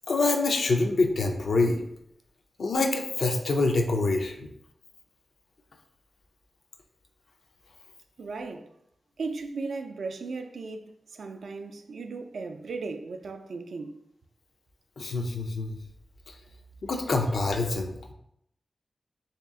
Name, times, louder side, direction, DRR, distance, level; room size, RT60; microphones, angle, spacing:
voice 1, 0.1-1.8 2.6-4.5 15.0-15.7 16.8-18.1, left 3 dB, 80° left, 0.4 m, -26 dB
voice 2, 8.2-8.7 9.2-14.0, right 4 dB, 85° right, 0.3 m, -36 dB
3.3 x 2.8 x 3.5 m
cardioid pair, 55°, 0 cm